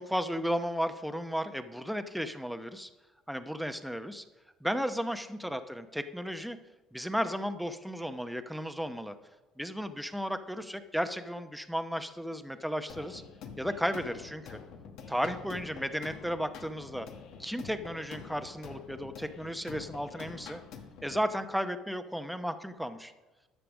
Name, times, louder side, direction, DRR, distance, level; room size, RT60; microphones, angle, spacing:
voice 1, 0.0-2.9 3.3-4.2 4.6-6.6 6.9-9.2 9.6-13.2 13.6-14.6 15.1-17.1 17.4-20.6 21.0-23.1, equal, ahead, 9 dB, 0.8 m, -34 dB
sound 1, 12.9-21.3, left 6 dB, 65° left, 1.2 m, -47 dB
11.5 x 6.7 x 6.2 m, 1.1 s
supercardioid pair, 75°, 0 cm